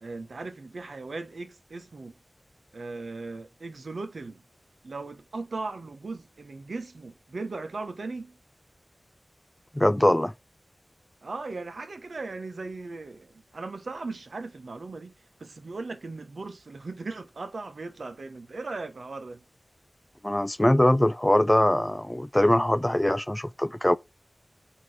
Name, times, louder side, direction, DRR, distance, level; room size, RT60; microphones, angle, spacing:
voice 1, 0.0-2.1 2.7-4.4 4.8-8.4 11.2-15.1 15.4-19.4, right 3 dB, 80° right, 1.0 m, -38 dB
voice 2, 9.7-10.3 20.2-24.0, left 1 dB, 15° left, 0.4 m, -22 dB
8.3 x 3.0 x 4.9 m
wide cardioid pair, 55°, 0 cm